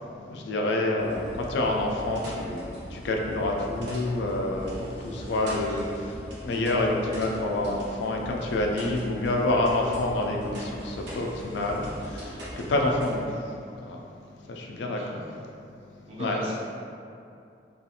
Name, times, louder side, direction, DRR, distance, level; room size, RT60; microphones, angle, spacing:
voice 1, 0.3-14.0 14.4-15.4 16.2-16.4, left 2 dB, 75° left, 0 dB, 0.3 m, -28 dB
sound 1, 1.0-13.2, equal, 75° right, 0.7 m, -40 dB
voice 2, 15.0-15.4 16.1-16.6, equal, 35° right, -5 dB, 0.4 m, -37 dB
2.3 x 2.3 x 2.8 m, 2.5 s
head